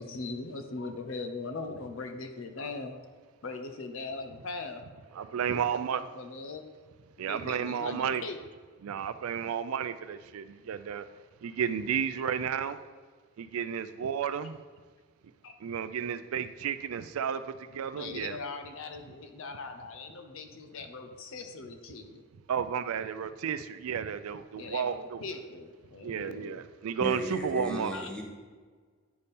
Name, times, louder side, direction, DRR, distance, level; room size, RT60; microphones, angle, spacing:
voice 1, 0.0-2.9 3.4-4.8 5.3-6.6 7.2-8.4 15.4-15.5 18.0-22.2 24.6-26.6 27.9-28.1, left 3 dB, 70° left, 6 dB, 0.6 m, -40 dB
voice 2, 5.1-6.0 7.2-8.2 8.8-11.1 11.4-12.8 13.4-14.6 15.6-18.4 22.5-25.2 26.0-27.9, right 7 dB, 90° right, 12 dB, 0.4 m, -32 dB
voice 3, 27.0-28.2, equal, 5° left, -1 dB, 0.9 m, -35 dB
9.5 x 3.4 x 4.2 m, 1.5 s
head